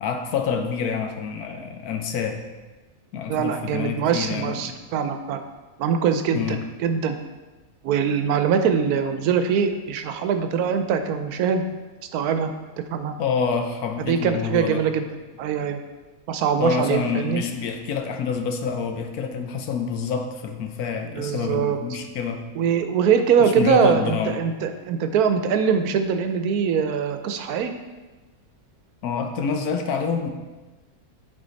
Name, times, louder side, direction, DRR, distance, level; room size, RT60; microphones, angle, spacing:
voice 1, 0.0-2.4 3.1-4.8 6.3-6.6 13.2-14.8 16.6-22.4 23.4-24.4 29.0-30.3, left 5 dB, 85° left, 5 dB, 1.2 m, -27 dB
voice 2, 3.3-5.4 5.8-7.2 7.8-11.7 12.1-12.5 12.9-13.2 14.0-15.1 15.4-15.8 16.3-17.4 21.1-21.8 22.6-27.7, right 7 dB, 90° right, 8 dB, 1.1 m, -22 dB
9.6 x 4.0 x 4.0 m, 1.2 s
omnidirectional pair, 1.5 m